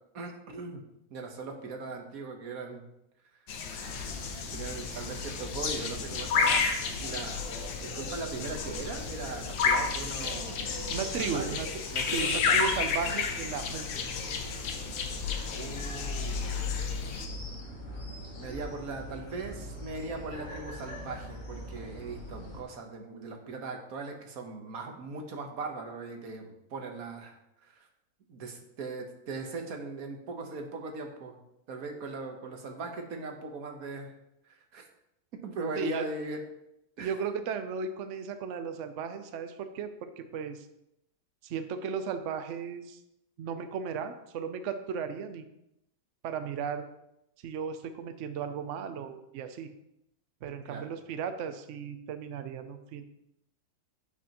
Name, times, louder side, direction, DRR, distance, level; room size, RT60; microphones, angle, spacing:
voice 1, 0.1-0.8 1.1-2.9 3.7-3.9 4.5-7.5 7.8-10.8 11.2-11.4 11.9-12.6 14.9-15.1 15.5-16.8 18.4-27.4 27.7-27.9 28.3-31.4 31.7-34.1 34.5-34.8 35.4-36.4 37.0-37.1 50.6-50.9, right 3 dB, 55° right, 3 dB, 1.4 m, -39 dB
sound 1, 3.5-17.3, left 5 dB, 90° left, 1.7 m, -32 dB
sound 2, 3.8-22.6, left 2 dB, 45° left, 2.1 m, -41 dB
voice 2, 10.9-11.7 12.0-13.9 35.8-36.0 37.0-40.7 41.4-43.0 43.4-45.4 46.2-46.9 47.4-49.7 50.4-53.1, right 6 dB, 85° right, 8 dB, 0.6 m, -35 dB
8.4 x 8.2 x 3.0 m, 0.83 s
omnidirectional pair, 2.0 m